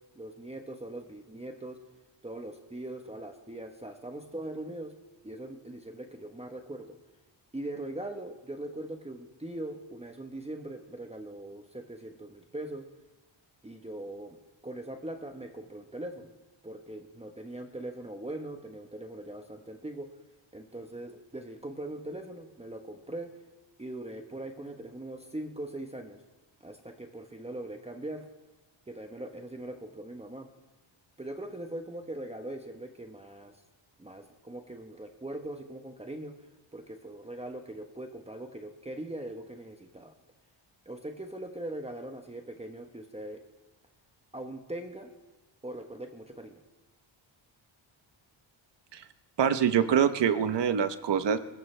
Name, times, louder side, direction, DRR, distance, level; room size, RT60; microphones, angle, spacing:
voice 1, 0.1-1.8 2.2-4.9 5.2-7.0 7.5-12.8 13.6-14.4 14.6-16.3 16.6-20.1 20.5-23.3 23.8-26.2 26.6-28.3 28.9-30.5 31.2-33.5 34.0-36.3 36.7-40.1 40.8-43.4 44.3-45.1 45.6-46.6, right 1 dB, 15° right, 4 dB, 1.2 m, -41 dB
voice 2, 49.4-51.4, right 8 dB, 60° right, 10 dB, 1.1 m, -25 dB
26.5 x 14.5 x 3.3 m, 1.1 s
wide cardioid pair, 130°, 48 cm